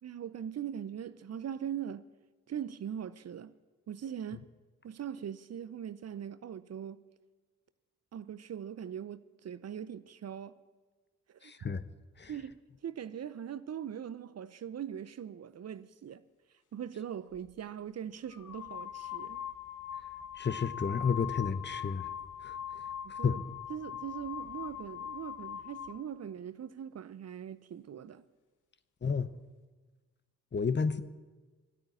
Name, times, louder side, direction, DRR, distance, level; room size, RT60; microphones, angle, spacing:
voice 1, 0.0-2.0 2.5-3.5 3.9-4.4 4.8-7.0 8.1-10.6 11.3-11.5 12.3-12.6 12.8-16.2 16.7-19.4 23.0-23.4 23.7-28.2, right 9 dB, 45° right, 0.7 m, -41 dB
voice 2, 11.4-11.8 12.2-12.3 20.4-22.1 22.4-22.6 23.2-23.4 29.0-29.3 30.5-31.0, left 5 dB, 30° left, 0.9 m, -31 dB
sound 1, 17.3-17.5 18.3-26.0, left 10 dB, 60° left, 1.2 m, -41 dB
13.0 x 8.8 x 9.9 m
hypercardioid pair, 45°, 34 cm